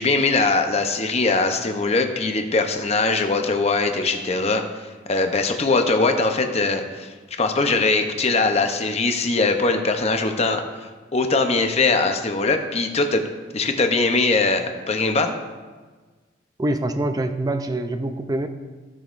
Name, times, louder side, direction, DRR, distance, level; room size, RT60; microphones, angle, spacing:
voice 1, 0.0-10.6 11.1-13.2 13.5-15.3, left 3 dB, 35° left, 5 dB, 0.7 m, -21 dB
voice 2, 16.6-18.5, right 1 dB, 20° right, 8 dB, 0.5 m, -25 dB
16.0 x 6.3 x 2.5 m, 1.4 s
head